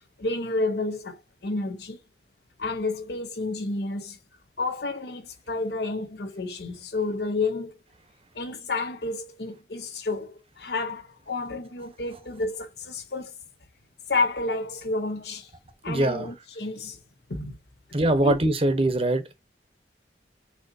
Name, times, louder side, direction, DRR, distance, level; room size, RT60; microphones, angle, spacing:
voice 1, 0.2-2.0 2.6-4.2 4.6-7.8 8.3-13.3 14.1-15.5 15.8-17.0 17.3-17.6 18.2-18.3, left 3 dB, 65° left, 0.9 m, -30 dB
voice 2, 15.9-16.3 17.9-19.3, right 1 dB, 35° right, 0.8 m, -23 dB
6.4 x 2.9 x 2.6 m
head